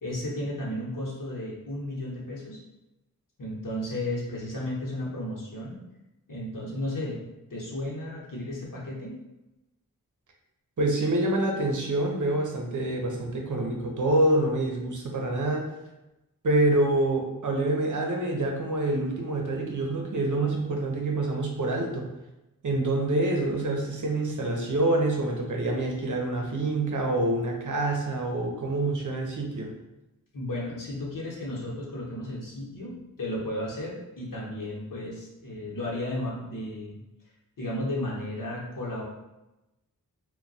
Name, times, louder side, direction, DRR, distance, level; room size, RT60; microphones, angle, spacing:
voice 1, 0.0-2.6 3.4-5.8 6.3-7.2 7.5-9.2 30.3-37.0 37.6-39.0, left 1 dB, 65° left, -5 dB, 1.0 m, -34 dB
voice 2, 10.8-15.7 16.4-22.1 22.6-29.7, right 2 dB, 60° right, 1 dB, 0.7 m, -26 dB
2.2 x 2.2 x 3.9 m, 0.96 s
wide cardioid pair, 50°, 35 cm